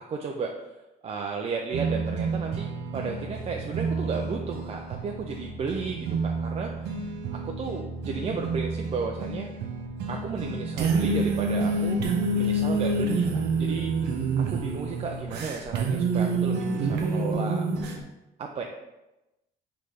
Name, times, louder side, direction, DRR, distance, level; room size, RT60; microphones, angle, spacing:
voice 1, 0.1-0.5 1.0-6.7 7.3-9.5 10.1-12.0 12.4-13.9 14.5-17.7 18.4-18.6, right 5 dB, 35° right, 1 dB, 0.4 m, -33 dB
sound 1, 1.7-18.0, right 3 dB, 75° right, 0.7 m, -28 dB
3.9 x 3.3 x 3.3 m, 0.96 s
cardioid pair, 110°, 17 cm